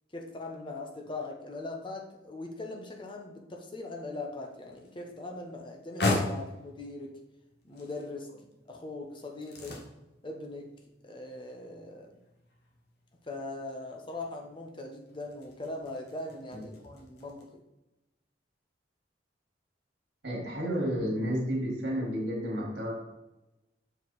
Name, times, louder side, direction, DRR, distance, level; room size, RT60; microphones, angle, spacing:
voice 1, 0.1-7.2 7.6-8.3 8.7-9.8 10.2-10.7 11.0-12.1 13.2-17.6, left 2 dB, 25° left, 1 dB, 1.0 m, -40 dB
sound 1, 4.2-17.4, left 2 dB, 60° left, 1.3 m, -40 dB
voice 2, 20.2-22.9, equal, 70° right, -3 dB, 2.0 m, -31 dB
6.8 x 4.8 x 4.1 m, 0.94 s
head